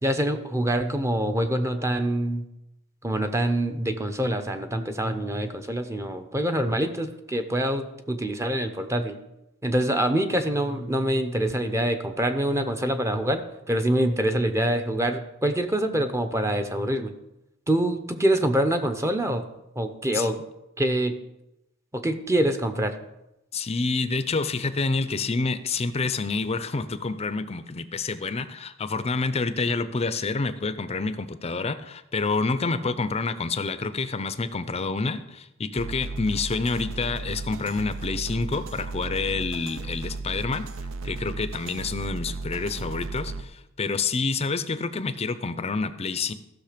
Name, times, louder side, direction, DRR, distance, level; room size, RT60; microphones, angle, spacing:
voice 1, 0.0-2.4 3.0-9.2 9.6-13.4 13.7-17.1 17.7-19.5 19.8-20.4 20.8-21.2 21.9-23.0, right 1 dB, 15° right, 7 dB, 0.7 m, -25 dB
voice 2, 23.5-40.7 41.0-46.3, left 4 dB, 30° left, 12 dB, 0.6 m, -28 dB
sound 1, 35.8-43.4, right 3 dB, 75° right, 0.7 m, -35 dB
14.5 x 6.4 x 5.1 m, 0.90 s
head